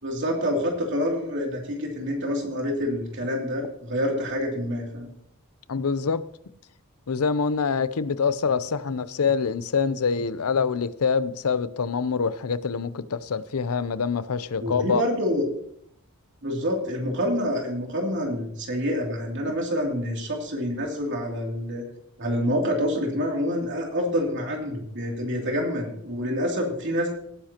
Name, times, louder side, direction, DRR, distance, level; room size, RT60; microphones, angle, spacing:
voice 1, 0.0-5.1 14.6-15.5 16.4-21.8 22.2-27.1, equal, 55° right, 2.8 m, -27 dB
voice 2, 5.7-6.2 7.1-15.0, left 5 dB, 80° left, 0.6 m, -25 dB
18.0 x 10.0 x 2.9 m
head